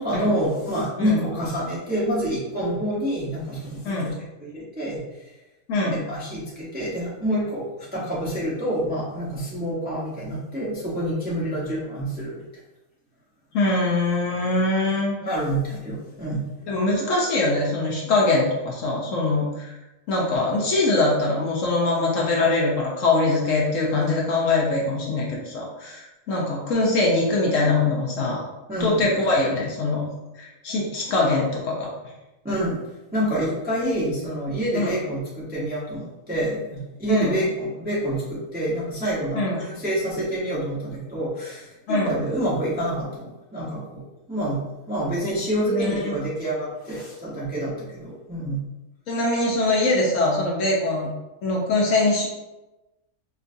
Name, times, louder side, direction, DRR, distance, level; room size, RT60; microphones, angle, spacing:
voice 1, 0.0-4.1 4.4-5.3 5.9-12.4 15.2-16.8 28.7-29.0 32.4-32.8 33.1-44.0 44.3-44.6 44.9-48.6, right 1 dB, 10° right, -7 dB, 0.5 m, -27 dB
voice 2, 5.7-6.0 13.5-15.1 16.7-19.7 20.1-28.4 28.8-30.1 30.4-31.9 34.7-34.9 37.1-37.4 39.3-39.6 41.9-42.2 45.7-46.1 49.1-51.1 51.4-52.3, left 2 dB, 65° left, -3 dB, 0.9 m, -23 dB
4.5 x 2.3 x 2.6 m, 1.0 s
omnidirectional pair, 1.6 m